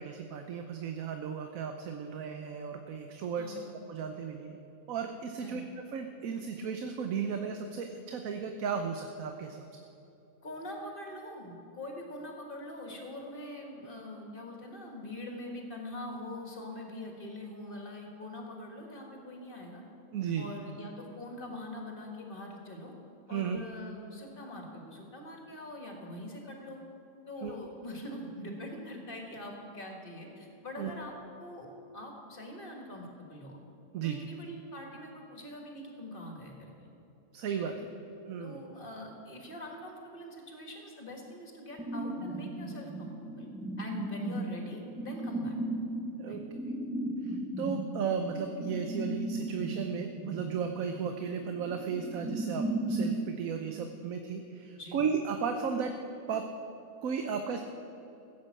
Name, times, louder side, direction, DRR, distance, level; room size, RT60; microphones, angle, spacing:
voice 1, 0.0-3.6 3.9-4.6 4.9-5.6 5.9-9.6 20.1-20.5 23.3-23.6 27.4-27.5 30.8-30.9 33.9-34.2 37.3-37.7 38.3-38.6 46.2-46.4 47.2-55.9 56.3-56.4 57.0-57.6, right 6 dB, 70° right, 6 dB, 1.2 m, -35 dB
voice 2, 3.4-3.7 5.4-5.6 10.4-19.8 20.4-22.9 23.3-26.8 27.3-31.1 31.4-33.6 34.0-36.9 37.6-37.8 38.4-43.5 43.8-45.5 46.3-46.4 54.8-55.0, left 1 dB, 35° left, 1 dB, 2.1 m, -43 dB
sound 1, 41.8-53.2, right 2 dB, 5° right, 0.5 m, -36 dB
15.5 x 7.5 x 7.6 m, 2.9 s
omnidirectional pair, 1.5 m